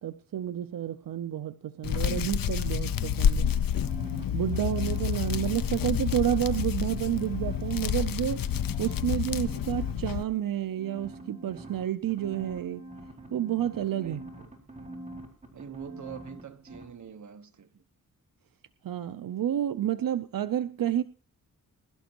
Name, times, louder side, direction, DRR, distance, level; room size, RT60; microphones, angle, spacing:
voice 1, 0.0-3.4 4.3-8.4 8.8-12.8 13.3-14.2 18.8-21.0, right 11 dB, 85° right, 0.7 m, -30 dB
Hands, 1.8-10.2, left 9 dB, 90° left, 0.7 m, -29 dB
sound 1, 3.5-5.7 6.0-8.1 8.4-9.9 10.8-16.4 16.7-16.8, right 1 dB, 20° right, 4.6 m, -44 dB
voice 2, 14.0-14.5 15.5-17.8, right 7 dB, 60° right, 1.2 m, -44 dB
21.5 x 12.0 x 3.0 m
wide cardioid pair, 135°, 33 cm